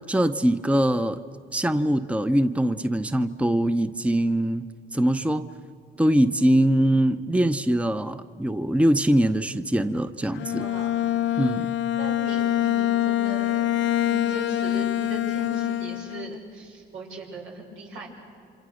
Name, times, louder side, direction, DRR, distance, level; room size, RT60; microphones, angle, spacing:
voice 1, 0.1-1.2 1.5-5.5 6.0-10.7 11.4-11.8, right 1 dB, 5° right, 11 dB, 0.8 m, -22 dB
Bowed string instrument, 10.3-16.4, left 12 dB, 70° left, 0.6 m, -25 dB
voice 2, 10.5-11.0 12.0-18.1, right 1 dB, 90° right, -2 dB, 6.3 m, -39 dB
28.5 x 26.0 x 6.5 m, 2.6 s
cardioid pair, 90°, 20 cm